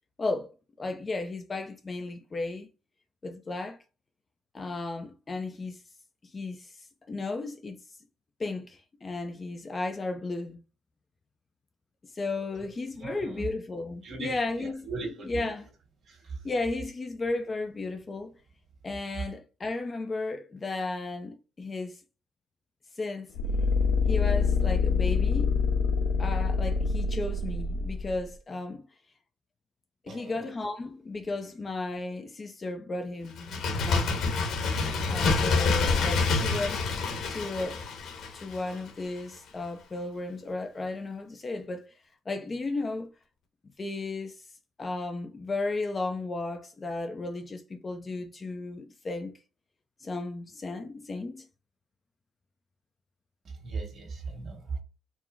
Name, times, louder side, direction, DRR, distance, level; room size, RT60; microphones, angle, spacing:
voice 1, 0.2-0.5 0.8-2.7 3.2-3.8 4.5-5.8 6.2-6.7 7.1-7.8 8.4-10.6 12.1-14.9 15.2-15.7 16.4-18.3 18.8-22.0 23.0-23.3 24.1-25.5 26.2-28.9 30.0-34.2 35.1-36.9 37.3-37.9 38.3-41.9 42.3-43.1 43.8-44.4 44.8-49.4 50.0-51.5, left 3 dB, 25° left, 0.4 m, -34 dB
voice 2, 13.0-13.5 14.0-15.5 16.1-16.4 30.1-30.5 53.4-54.8, right 3 dB, 40° right, 1.8 m, -38 dB
sound 1, 23.4-28.2, left 4 dB, 85° left, 0.6 m, -26 dB
Bird, 33.3-38.9 39.2-39.3, left 4 dB, 60° left, 1.0 m, -27 dB
4.7 x 2.0 x 3.8 m
cardioid pair, 135°, 0 cm